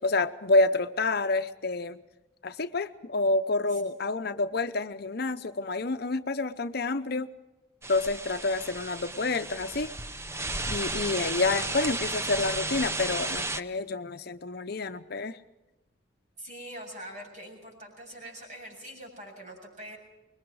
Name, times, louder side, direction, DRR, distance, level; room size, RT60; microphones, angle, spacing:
voice 1, 0.0-2.0 2.4-7.3 7.9-9.9 10.7-15.4, left 3 dB, 50° left, 9 dB, 0.7 m, -28 dB
sound 1, 7.8-13.6, right 2 dB, 15° right, 0.7 m, -33 dB
voice 2, 16.4-20.0, right 1 dB, 40° right, 1 dB, 7.5 m, -43 dB
25.5 x 22.0 x 4.8 m, 1.1 s
head